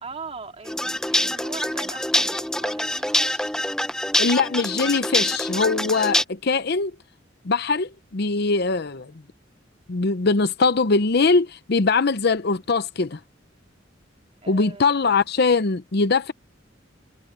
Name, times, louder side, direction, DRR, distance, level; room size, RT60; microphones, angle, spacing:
voice 1, 0.0-3.5 14.4-14.9, right 4 dB, 35° right, 2.7 m, -40 dB
sound 1, 0.7-6.2, left 1 dB, 5° left, 0.6 m, -25 dB
voice 2, 4.2-6.9 7.4-9.1 9.9-13.2 14.5-16.3, left 4 dB, 55° left, 0.7 m, -22 dB
head